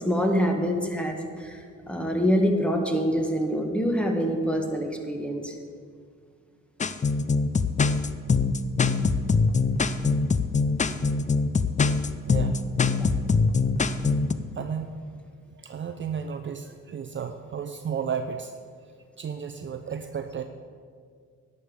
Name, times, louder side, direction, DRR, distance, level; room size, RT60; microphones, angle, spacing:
voice 1, 0.0-5.5, equal, 5° left, 3 dB, 1.6 m, -25 dB
sound 1, 6.8-14.3, left 4 dB, 25° left, 0.5 m, -23 dB
voice 2, 12.3-12.6 14.6-15.0 15.5-18.5 19.2-20.4, right 7 dB, 40° right, 7 dB, 0.6 m, -33 dB
11.5 x 5.5 x 8.8 m, 2.1 s
cardioid pair, 90°, 30 cm